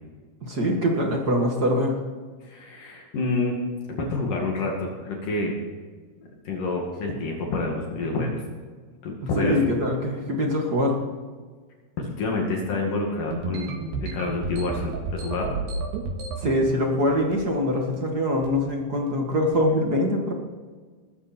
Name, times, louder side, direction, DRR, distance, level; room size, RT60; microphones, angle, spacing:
voice 1, 0.4-2.0 9.3-11.0 16.4-20.3, left 1 dB, 35° right, 1 dB, 1.6 m, -23 dB
voice 2, 2.4-3.6 3.9-5.5 6.2-8.4 9.0-9.6 12.0-13.7 14.0-15.5, left 3 dB, 60° left, 0 dB, 3.6 m, -28 dB
sound 1, 13.3-16.6 17.1-17.6 17.8-18.1 18.4-18.7 19.3-19.6, right 3 dB, 90° right, 3.7 m, -31 dB
20.0 x 14.0 x 4.5 m, 1.5 s
omnidirectional pair, 4.5 m